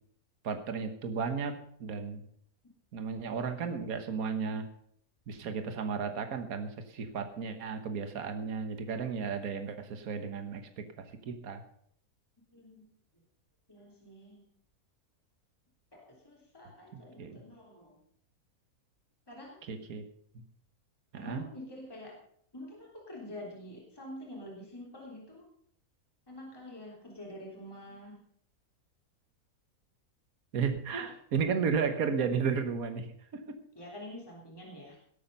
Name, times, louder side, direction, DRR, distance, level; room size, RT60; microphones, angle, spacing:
voice 1, 0.4-2.2 2.9-4.7 5.3-11.6 16.9-17.4 19.7-20.0 20.4-20.5 21.1-21.4 30.5-33.6, right 6 dB, 65° right, 8 dB, 1.7 m, -34 dB
voice 2, 12.5-12.9 13.7-14.4 15.9-18.0 19.3-19.6 21.1-22.2 22.5-25.5 26.3-28.2 31.0-31.1 33.8-35.0, left 1 dB, 15° left, -3 dB, 3.5 m, -47 dB
18.5 x 8.7 x 5.6 m, 0.64 s
omnidirectional pair, 1.6 m